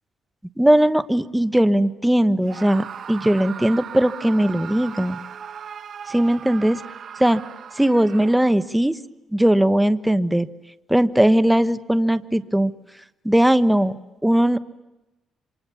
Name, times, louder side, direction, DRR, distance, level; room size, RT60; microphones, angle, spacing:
voice 1, 0.6-5.2 6.1-6.8 7.2-7.4 7.8-9.0 9.3-10.5 10.9-12.7 13.2-13.9 14.2-14.6, right 1 dB, 5° right, 12 dB, 1.2 m, -19 dB
Screaming, 2.4-8.7, right 8 dB, 60° right, 1.3 m, -38 dB
28.5 x 26.0 x 7.1 m, 1.0 s
cardioid pair, 90°, 0 cm